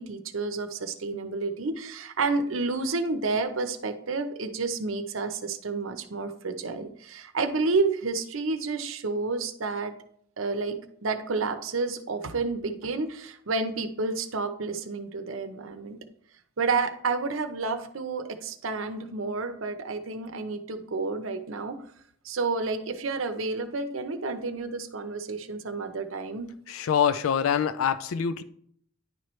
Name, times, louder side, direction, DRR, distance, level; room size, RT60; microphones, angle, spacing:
voice 1, 0.0-9.9 10.4-16.0 16.6-21.8 22.2-26.5, right 3 dB, 80° right, 9 dB, 0.7 m, -30 dB
voice 2, 26.7-28.4, left 8 dB, 90° left, 13 dB, 0.4 m, -25 dB
10.0 x 4.4 x 3.1 m, 0.65 s
head